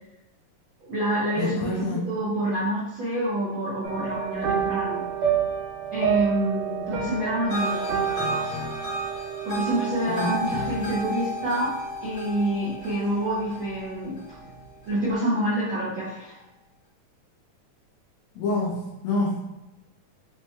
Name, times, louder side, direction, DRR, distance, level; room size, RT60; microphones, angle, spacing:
voice 1, 0.8-5.0 5.9-8.5 9.4-11.7 12.0-14.2 14.9-16.4, right 1 dB, 70° right, -9 dB, 1.1 m, -27 dB
voice 2, 1.4-2.1 10.1-10.6 18.4-19.6, left 2 dB, 75° left, -3 dB, 1.8 m, -28 dB
sound 1, 3.8-13.4 13.7-14.1 14.4-14.5, right 8 dB, 90° right, 2.4 m, -30 dB
sound 2, 7.5-14.6, equal, 55° left, 1.1 m, -33 dB
6.0 x 2.2 x 2.8 m, 1.0 s
omnidirectional pair, 3.5 m